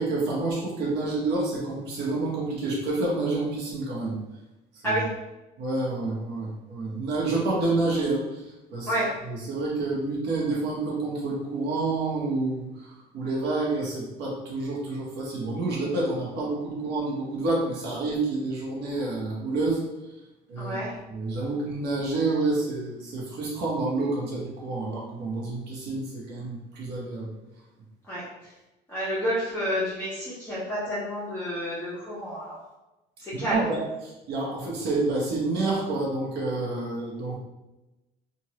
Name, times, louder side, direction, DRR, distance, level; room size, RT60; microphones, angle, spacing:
voice 1, 0.0-4.1 4.8-5.0 5.6-8.4 8.7-8.9 9.2-19.9 20.5-20.8 21.1-27.3 33.3-37.3, right 2 dB, 80° right, -4 dB, 1.1 m, -28 dB
voice 2, 20.6-20.9 28.1-28.2 28.9-32.6 33.2-33.6, equal, 10° left, -11 dB, 1.2 m, -29 dB
3.0 x 2.6 x 3.0 m, 1.0 s
cardioid pair, 110°, 17 cm